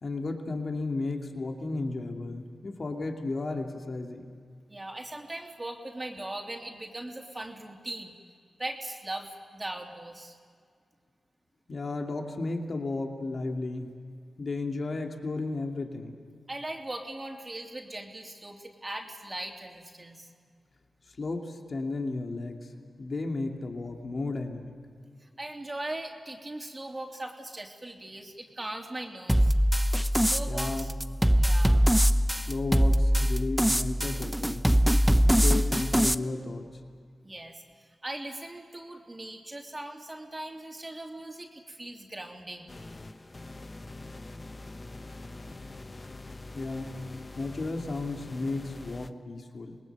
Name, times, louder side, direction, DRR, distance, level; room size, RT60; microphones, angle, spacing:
voice 1, 0.0-4.4 11.7-13.9 14.4-16.2 21.2-22.7 23.0-24.7 30.5-30.9 32.5-34.7 35.1-36.7 46.5-47.0 47.3-49.8, left 3 dB, 55° left, 2 dB, 2.6 m, -34 dB
voice 2, 4.7-8.1 8.6-10.4 16.5-20.3 25.2-29.5 30.1-30.9 31.3-31.8 37.2-37.6 38.0-42.7, right 1 dB, 25° right, 2 dB, 3.2 m, -39 dB
sound 1, 29.3-36.1, equal, 5° right, 0.8 m, -23 dB
sound 2, 42.7-49.1, left 2 dB, 35° left, 1.1 m, -44 dB
26.5 x 20.0 x 8.1 m, 2.1 s
cardioid pair, 50°, 0 cm